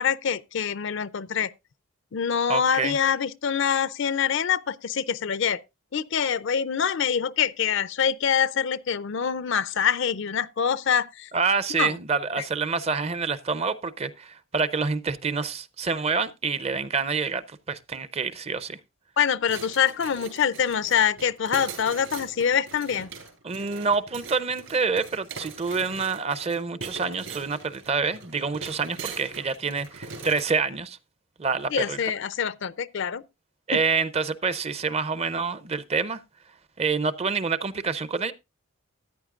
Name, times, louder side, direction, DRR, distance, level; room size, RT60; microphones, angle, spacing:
voice 1, 0.0-1.5 2.1-5.6 5.9-11.3 11.8-11.9 19.2-23.1 31.7-33.2 33.7-33.8, left 7 dB, 60° left, 0.4 m, -25 dB
voice 2, 2.5-3.0 11.3-18.8 23.4-31.0 31.4-32.0 33.7-36.2 36.8-38.3, right 4 dB, 30° right, 0.5 m, -27 dB
sound 1, 19.4-30.6, right 4 dB, 70° right, 4.0 m, -41 dB
14.0 x 9.4 x 2.4 m
head